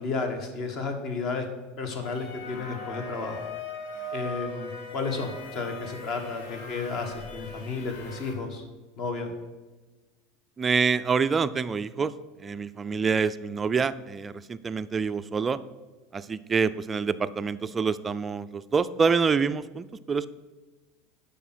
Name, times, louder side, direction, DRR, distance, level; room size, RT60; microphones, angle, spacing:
voice 1, 0.0-1.4 1.8-3.4 4.1-8.6 9.0-9.3, left 4 dB, 40° left, 6 dB, 1.5 m, -32 dB
sound 1, 2.0-8.4, left 2 dB, 70° left, 1.6 m, -39 dB
voice 2, 10.6-12.1 12.4-15.6 16.1-20.3, right 5 dB, 15° right, 13 dB, 0.3 m, -26 dB
8.2 x 5.6 x 6.0 m, 1.2 s
supercardioid pair, 150°, 0 cm